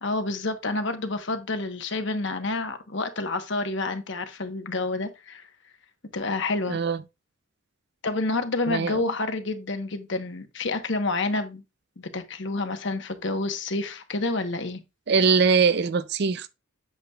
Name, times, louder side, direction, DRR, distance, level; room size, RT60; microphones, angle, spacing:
voice 1, 0.0-5.4 6.1-6.8 8.0-11.6 12.0-14.8, left 2 dB, 55° left, 1.0 m, -29 dB
voice 2, 8.7-9.0 15.1-16.5, right 5 dB, 50° right, 0.5 m, -22 dB
8.1 x 7.9 x 2.3 m
head